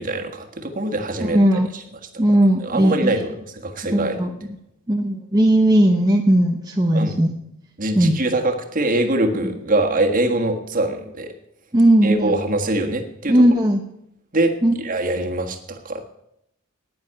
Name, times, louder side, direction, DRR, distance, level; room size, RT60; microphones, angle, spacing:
voice 1, 0.0-1.4 1.7-1.8 2.6-4.2 6.9-7.2 7.8-11.3 12.0-13.4 14.3-16.0, right 2 dB, 40° right, 4 dB, 1.6 m, -23 dB
voice 2, 1.2-1.7 2.2-3.1 3.9-4.3 4.9-7.3 7.9-8.1 11.7-12.3 13.3-13.8 14.6-14.7, right 1 dB, 20° right, 2 dB, 0.8 m, -17 dB
10.0 x 9.6 x 8.8 m, 0.81 s
head